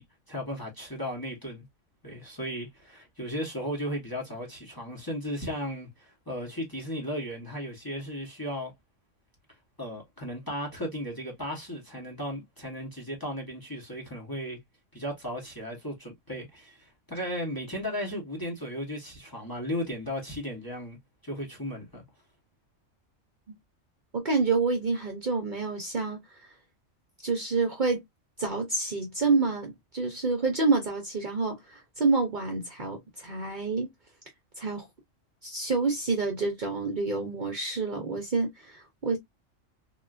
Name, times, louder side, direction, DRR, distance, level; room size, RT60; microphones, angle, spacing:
voice 1, 0.0-1.7 2.0-8.7 9.8-14.6 14.9-21.0 21.2-22.0, equal, 20° left, 0.9 m, -35 dB
voice 2, 24.1-26.2 27.2-28.0 28.4-33.9 34.6-34.9 35.4-39.2, right 3 dB, 45° right, 0.8 m, -28 dB
3.6 x 2.3 x 2.3 m
omnidirectional pair, 1.3 m